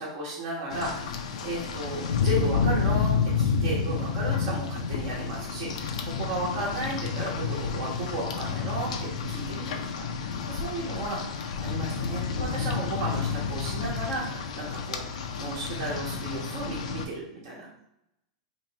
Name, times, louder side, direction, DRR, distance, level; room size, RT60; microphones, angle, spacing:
voice 1, 0.0-9.8 10.2-11.2 11.6-15.0 15.4-17.8, right 1 dB, 60° right, -5 dB, 1.2 m, -34 dB
Rain, 0.7-17.0, left 5 dB, 80° left, 0.5 m, -30 dB
2.9 x 2.9 x 4.1 m, 0.82 s
hypercardioid pair, 125°, 4 cm